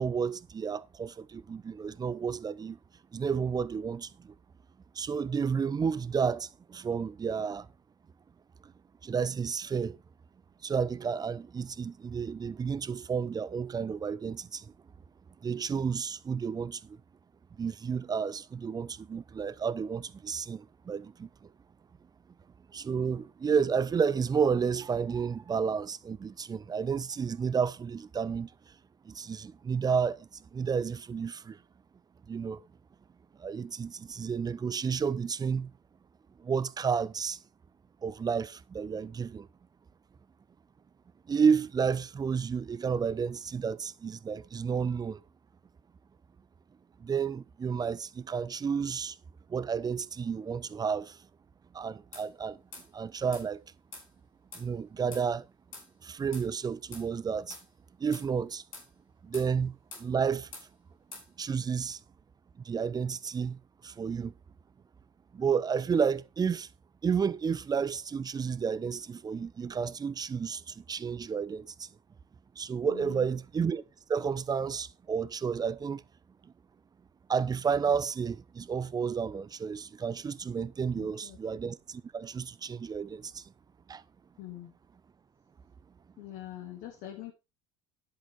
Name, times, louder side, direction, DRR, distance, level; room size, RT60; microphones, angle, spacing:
voice 1, 0.0-2.8 3.1-4.3 5.0-7.7 9.0-10.0 10.6-14.6 15.4-17.0 17.6-21.3 22.7-28.5 29.1-30.2 30.5-31.6 32.3-32.6 33.4-35.7 36.4-37.4 38.0-39.5 41.3-45.2 47.0-49.2 49.5-51.1 51.7-52.6 52.9-53.6 54.6-55.4 56.0-57.6 58.0-58.6 59.2-59.7 60.0-60.5 61.4-62.0 62.6-63.6 63.8-64.3 65.3-66.7 67.0-71.9 72.6-73.8 74.1-76.0 77.3-83.4 83.9-84.0, right 6 dB, 20° right, 0.7 m, -31 dB
sound 1, 52.1-52.3 52.7-52.9 53.3-53.5 53.9-54.1 54.5-54.7 55.1-55.3 55.7-55.9 56.3-56.5 56.9-57.1 57.5-57.7 58.1-58.3 58.7-58.9 59.3-59.5 59.9-60.1 60.5-60.7 61.1-61.3, left 3 dB, 90° left, 5.1 m, -45 dB
voice 2, 72.9-73.3 80.9-81.4 84.4-84.7 86.2-87.3, left 13 dB, 60° left, 2.1 m, -44 dB
10.5 x 8.1 x 4.3 m
hypercardioid pair, 80°, 17 cm